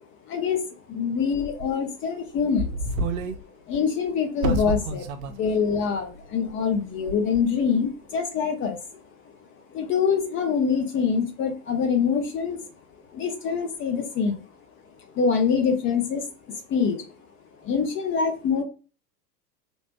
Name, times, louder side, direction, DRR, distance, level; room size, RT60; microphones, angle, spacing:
voice 1, 0.2-0.6 0.9-3.0 3.7-9.0 9.3-9.4 9.7-12.6 13.1-14.4 15.1-17.1 17.6-18.6, left 6 dB, 25° left, 5 dB, 0.7 m, -25 dB
sound 1, 1.6-1.7 2.4-3.4 3.7-3.8 4.4-5.3 5.6-5.7 6.5-6.8 7.1-7.4, right 2 dB, 60° right, 0.6 m, -28 dB
3.2 x 2.0 x 2.9 m, 0.33 s
figure-of-eight pair, 95°, 48 cm